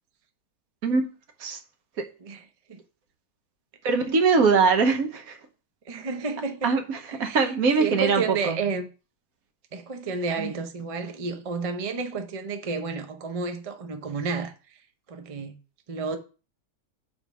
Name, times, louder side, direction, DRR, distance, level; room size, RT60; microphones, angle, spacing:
voice 1, 3.8-5.4 6.6-8.6 10.4-10.5, right 4 dB, 65° right, 1.3 m, -22 dB
voice 2, 5.9-6.7 7.1-7.5 7.8-8.9 9.7-14.5 15.1-15.5 15.9-16.2, right 4 dB, 45° right, 0.4 m, -31 dB
5.2 x 4.6 x 6.0 m
omnidirectional pair, 1.7 m